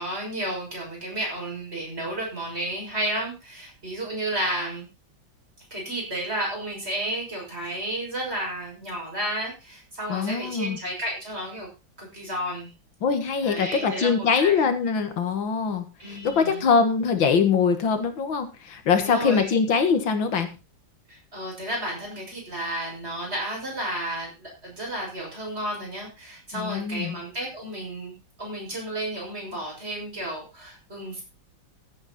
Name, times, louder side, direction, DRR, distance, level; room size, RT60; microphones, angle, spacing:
voice 1, 0.0-4.9 5.7-11.7 12.0-12.7 13.4-14.7 16.0-16.7 19.0-19.5 21.1-28.1 28.4-31.2, right 1 dB, 30° right, -1 dB, 6.7 m, -32 dB
voice 2, 10.1-10.8 13.0-20.5 26.5-27.2, left 5 dB, 85° left, 8 dB, 2.4 m, -23 dB
15.0 x 9.4 x 4.3 m, 0.30 s
omnidirectional pair, 2.1 m